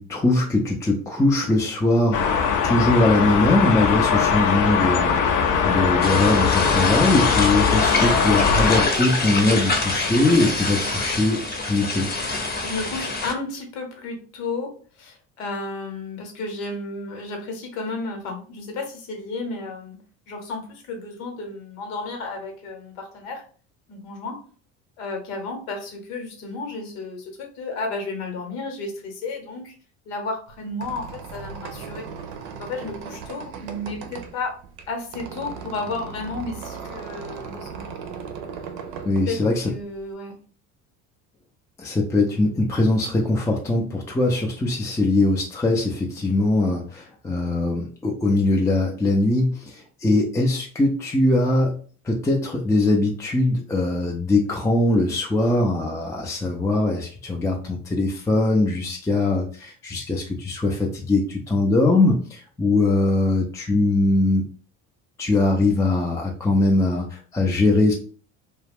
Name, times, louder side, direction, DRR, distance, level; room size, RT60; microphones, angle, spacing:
voice 1, 0.0-2.2 2.6-12.1 39.1-39.7 41.8-51.8 52.0-64.4 65.2-67.9, left 2 dB, 10° left, 0 dB, 0.4 m, -21 dB
sound 1, 2.1-8.9, left 6 dB, 50° left, 0.6 m, -20 dB
sound 2, 6.0-13.3, left 3 dB, 25° left, 0.8 m, -26 dB
voice 2, 12.6-20.0 20.3-23.4 23.9-24.4 25.0-29.7 30.1-32.0 32.6-34.6 34.9-37.9 39.3-39.4 39.7-40.3, left 3 dB, 75° left, 3 dB, 1.0 m, -32 dB
Squeak, 30.5-40.1, right 6 dB, 70° right, 0.6 m, -37 dB
2.3 x 2.1 x 3.3 m, 0.42 s
hypercardioid pair, 70°, 40 cm